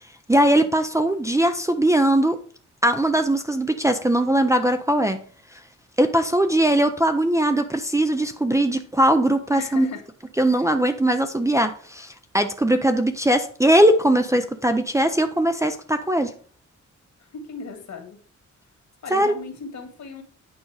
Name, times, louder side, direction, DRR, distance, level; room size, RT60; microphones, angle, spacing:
voice 1, 0.3-2.4 2.8-5.2 6.0-9.9 10.4-16.3 19.1-19.3, right 1 dB, 10° right, 5 dB, 0.5 m, -20 dB
voice 2, 9.5-10.0 10.5-10.7 17.2-18.2 19.0-20.2, left 4 dB, 65° left, 4 dB, 2.1 m, -37 dB
8.8 x 5.3 x 4.8 m, 0.43 s
wide cardioid pair, 165°, 30 cm